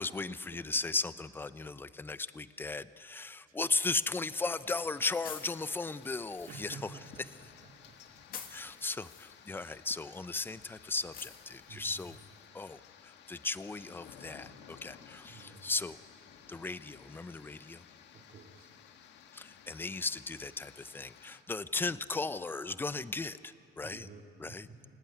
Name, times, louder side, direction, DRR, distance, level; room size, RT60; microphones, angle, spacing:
voice 1, 0.0-6.9 7.3-7.4 8.5-12.2 12.5-16.0 16.5-17.8 19.3-24.1 24.4-24.7, left 3 dB, 10° left, 14 dB, 0.6 m, -36 dB
Hitting Tall Grass, 3.8-12.5, left 8 dB, 55° left, 2.0 m, -52 dB
sound 1, 4.7-21.4, left 8 dB, 75° left, 1.8 m, -56 dB
voice 2, 6.5-7.5 7.8-7.9 11.7-12.1 15.3-15.6 18.1-18.7 23.8-24.9, right 4 dB, 50° right, 2 dB, 3.4 m, -51 dB
28.0 x 17.5 x 9.6 m, 2.8 s
cardioid pair, 135°, 18 cm